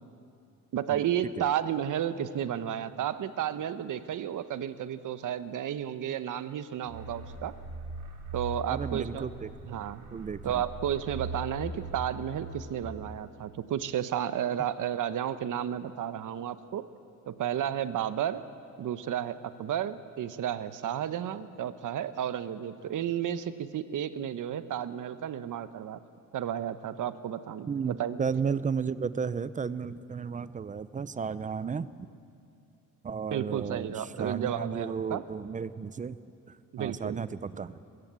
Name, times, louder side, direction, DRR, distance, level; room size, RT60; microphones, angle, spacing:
voice 1, 0.7-7.5 8.3-9.3 9.7-10.0 10.4-16.8 17.3-18.4 18.8-26.0 26.3-28.3 33.3-35.2 36.7-37.2, right 10 dB, 60° right, 13 dB, 0.9 m, -32 dB
sound 1, 6.9-13.4, right 2 dB, 75° right, 2.6 m, -41 dB
voice 2, 8.7-9.5 10.1-10.6 27.7-32.1 33.0-36.2 36.8-37.7, right 6 dB, 25° right, 16 dB, 0.4 m, -33 dB
23.0 x 14.5 x 8.2 m, 2.5 s
cardioid pair, 140°, 35 cm